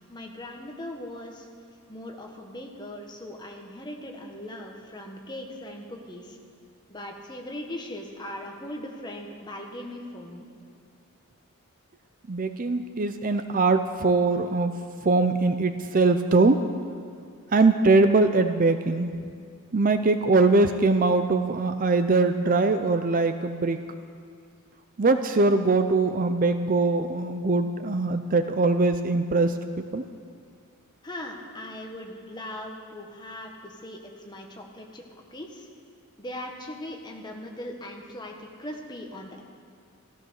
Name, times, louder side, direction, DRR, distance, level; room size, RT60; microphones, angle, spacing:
voice 1, 0.1-1.5 1.9-6.4 6.9-10.5 31.0-35.0 35.3-35.7 36.2-39.4, left 1 dB, 20° left, 1 dB, 1.5 m, -39 dB
voice 2, 12.3-14.7 15.0-16.6 17.5-19.1 19.7-23.8 25.0-29.5 29.9-30.0, right 3 dB, 40° right, 9 dB, 0.5 m, -22 dB
15.0 x 14.0 x 6.4 m, 2.2 s
head